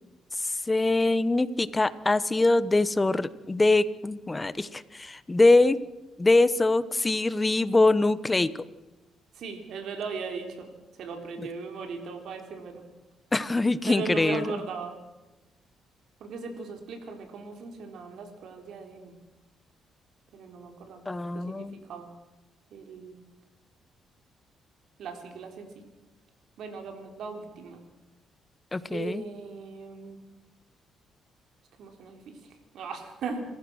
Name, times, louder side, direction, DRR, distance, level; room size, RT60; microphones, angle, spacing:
voice 1, 0.4-5.8 6.2-8.5 13.3-14.6 21.1-21.8 28.7-29.2, left 2 dB, 20° left, 16 dB, 0.9 m, -23 dB
voice 2, 9.3-10.7 11.0-12.8 13.9-14.9 16.2-19.2 20.3-22.1 22.7-23.2 25.0-25.7 26.6-27.8 28.9-30.2 31.8-32.4 32.7-33.4, right 5 dB, 75° right, 5 dB, 3.8 m, -38 dB
27.0 x 15.0 x 6.3 m, 1.1 s
cardioid pair, 90°, 0 cm